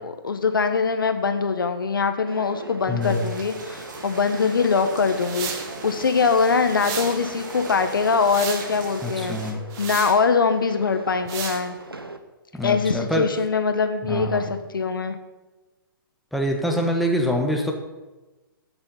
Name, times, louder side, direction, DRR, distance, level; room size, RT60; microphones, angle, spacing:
voice 1, 0.0-9.4 9.8-11.7 12.6-15.2, left 5 dB, 70° left, 8 dB, 1.3 m, -23 dB
sound 1, 2.3-12.2, right 1 dB, 90° right, 1.2 m, -40 dB
voice 2, 2.9-3.2 9.0-9.6 12.5-13.3 14.1-14.4 16.3-17.7, equal, ahead, 1 dB, 1.4 m, -25 dB
sound 2, 3.0-9.5, right 3 dB, 55° right, 2.4 m, -39 dB
sound 3, 5.2-5.7 6.7-7.2 7.9-8.7 9.7-10.2 11.3-11.6, right 6 dB, 25° right, 1.7 m, -32 dB
13.5 x 6.9 x 5.7 m, 1.1 s
figure-of-eight pair, 120°, 12 cm